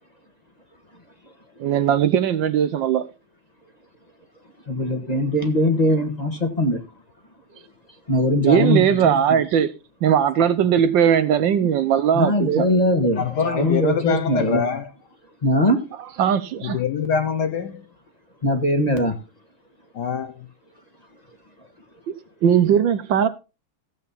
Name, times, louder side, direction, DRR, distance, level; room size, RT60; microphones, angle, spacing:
voice 1, 1.6-3.1 8.4-9.7 10.0-12.7 15.9-16.8 22.4-23.3, right 8 dB, 70° right, 1.4 m, -19 dB
voice 2, 4.7-6.9 8.1-9.4 12.1-14.7 15.4-15.8 18.4-19.2, left 1 dB, 20° left, 1.4 m, -21 dB
voice 3, 13.2-14.9 16.6-17.7 19.9-20.3, left 6 dB, 60° left, 1.2 m, -24 dB
15.0 x 7.6 x 4.1 m
omnidirectional pair, 2.3 m